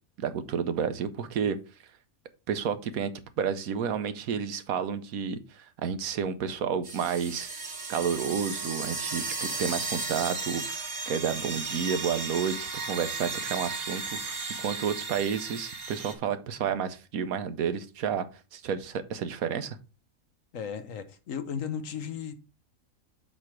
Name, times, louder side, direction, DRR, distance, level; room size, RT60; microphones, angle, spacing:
voice 1, 0.2-1.6 2.5-3.1 3.4-7.5 7.9-18.3 18.5-19.8, right 7 dB, 75° right, 1.2 m, -31 dB
sound 1, 6.8-16.1, right 3 dB, 35° right, 0.9 m, -35 dB
voice 2, 20.5-22.3, left 7 dB, 65° left, 1.2 m, -35 dB
7.5 x 3.3 x 5.9 m
omnidirectional pair, 1.5 m